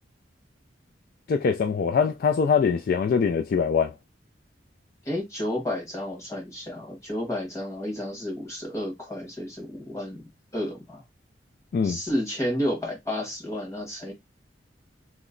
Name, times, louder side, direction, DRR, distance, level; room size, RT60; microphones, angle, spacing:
voice 1, 1.3-3.9 11.7-12.0, left 6 dB, 50° left, 0.3 m, -23 dB
voice 2, 5.0-11.0 11.8-14.1, left 1 dB, 15° left, 1.3 m, -31 dB
2.9 x 2.1 x 3.7 m
head